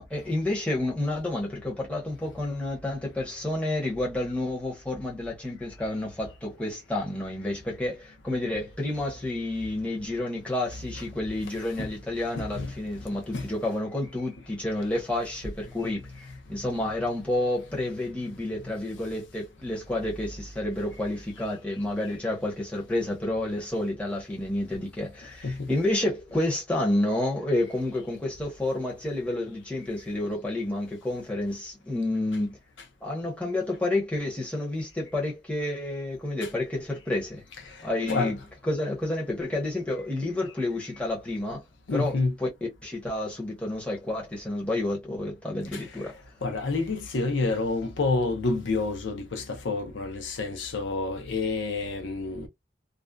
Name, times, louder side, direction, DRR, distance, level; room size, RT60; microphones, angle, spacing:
voice 1, 0.0-16.1 16.5-32.6 33.0-37.4 37.8-38.4 38.7-41.6 41.9-42.5 42.8-46.1, left 1 dB, 5° left, 0.8 m, -30 dB
voice 2, 12.4-12.7 13.3-13.4 25.4-25.7 36.4-36.5 38.0-38.3 41.9-42.3 45.7-45.8 46.4-52.5, left 3 dB, 85° left, 0.6 m, -28 dB
2.5 x 2.1 x 2.2 m
head